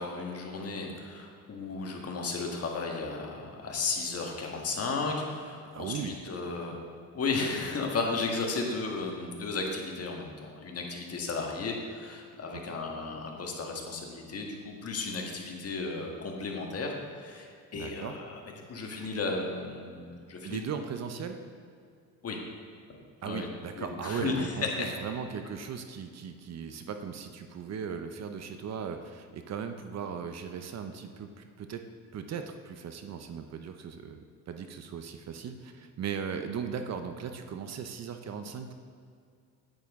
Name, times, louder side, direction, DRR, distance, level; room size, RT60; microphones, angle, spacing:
voice 1, 0.0-6.8 7.1-18.4 18.7-20.6 22.2-22.4 22.9-23.0 23.2-24.9, left 3 dB, 45° left, 1 dB, 1.6 m, -34 dB
voice 2, 5.6-6.2 12.5-12.8 17.7-18.2 18.9-19.1 20.4-21.4 23.2-31.8 32.1-38.7, right 7 dB, 50° right, 7 dB, 0.7 m, -38 dB
9.1 x 8.8 x 3.6 m, 2.3 s
cardioid pair, 100°, 35 cm